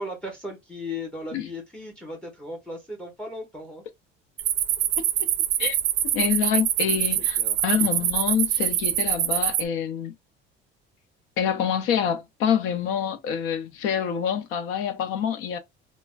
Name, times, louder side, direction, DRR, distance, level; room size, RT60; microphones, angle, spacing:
voice 1, 0.0-3.8 7.2-7.6, left 1 dB, 5° left, 0.8 m, -36 dB
sound 1, 4.4-9.6, right 12 dB, 50° right, 0.4 m, -24 dB
voice 2, 5.0-5.3 5.6-5.8 6.1-10.1 11.4-15.6, left 8 dB, 85° left, 0.6 m, -26 dB
3.2 x 2.1 x 2.3 m
cardioid pair, 175°, 21 cm